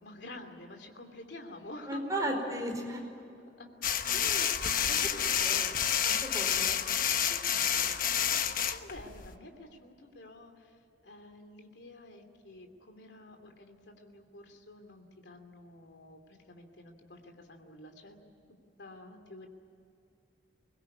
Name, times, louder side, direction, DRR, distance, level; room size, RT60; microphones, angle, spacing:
voice 1, 0.0-2.1 3.6-3.7 4.1-4.5 4.7-5.9 7.2-10.8 11.0-18.2 18.8-19.5, left 1 dB, 75° left, 5 dB, 2.9 m, -49 dB
voice 2, 1.9-3.0 4.1-4.4 5.2-5.6 6.0-6.8, right 1 dB, 20° right, 2 dB, 4.7 m, -36 dB
sound 1, 3.8-9.4, left 9 dB, 50° left, 1.0 m, -29 dB
23.0 x 21.0 x 9.7 m, 2.6 s
head